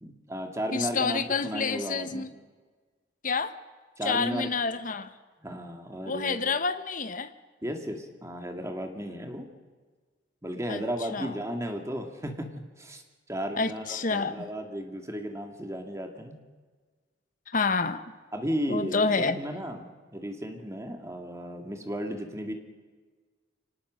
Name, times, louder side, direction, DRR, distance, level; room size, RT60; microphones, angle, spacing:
voice 1, 0.0-2.3 4.0-4.5 5.4-6.5 7.6-9.5 10.4-12.5 12.8-13.0 13.3-16.4 18.3-22.5, equal, 15° right, 4 dB, 2.1 m, -34 dB
voice 2, 0.7-2.3 3.2-3.5 4.0-5.1 6.0-7.3 10.7-10.8 11.1-11.3 13.6-14.5 17.5-18.0 18.7-19.4, left 4 dB, 45° left, 11 dB, 1.1 m, -28 dB
24.5 x 19.0 x 6.4 m, 1.4 s
head